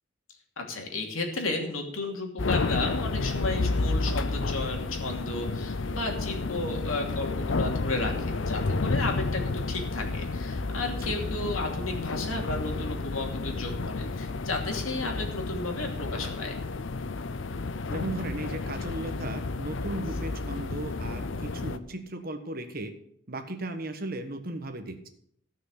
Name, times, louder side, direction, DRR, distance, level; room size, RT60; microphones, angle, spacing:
voice 1, 0.6-16.6, left 2 dB, 90° left, 2 dB, 2.8 m, -33 dB
sound 1, 2.4-21.8, left 3 dB, 65° left, 0.7 m, -31 dB
voice 2, 17.9-22.9 23.3-25.1, right 2 dB, 45° right, 7 dB, 1.3 m, -36 dB
15.5 x 6.4 x 6.6 m, 0.70 s
head